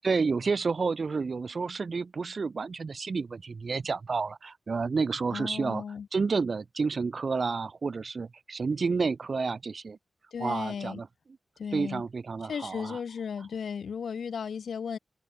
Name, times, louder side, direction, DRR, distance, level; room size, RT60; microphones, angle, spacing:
voice 1, 0.0-5.8 6.1-10.0 10.4-11.1 11.7-13.0, right 4 dB, 65° right, 0.5 m, -30 dB
voice 2, 5.3-6.1 10.3-11.0 11.6-12.0 12.5-15.0, left 6 dB, 85° left, 0.8 m, -35 dB
cardioid pair, 45°, 0 cm